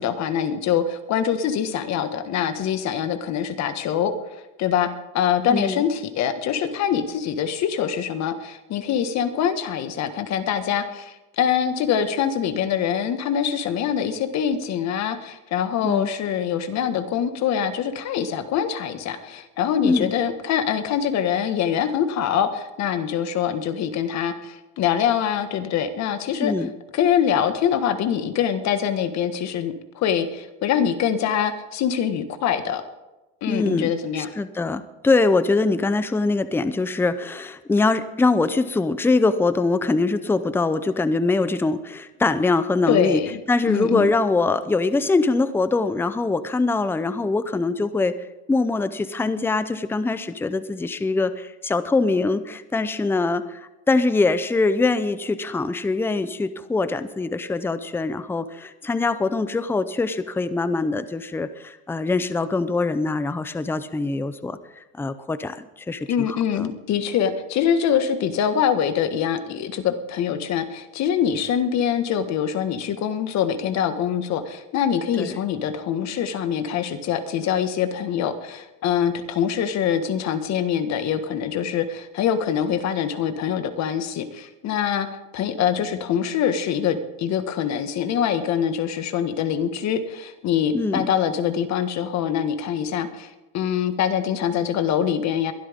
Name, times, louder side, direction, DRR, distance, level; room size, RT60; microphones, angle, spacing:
voice 1, 0.0-4.1 4.6-4.9 5.1-26.5 26.9-32.8 33.4-34.3 42.9-43.4 43.7-44.1 66.1-85.1 85.3-95.5, left 8 dB, 45° left, 9 dB, 1.7 m, -24 dB
voice 2, 5.5-5.8 15.8-16.1 19.8-20.1 26.4-26.7 33.5-43.2 43.5-48.2 48.5-66.7 75.2-75.3 90.7-91.1, left 3 dB, 5° left, 13 dB, 0.6 m, -23 dB
22.0 x 12.5 x 3.6 m, 1.1 s
supercardioid pair, 125°, 37 cm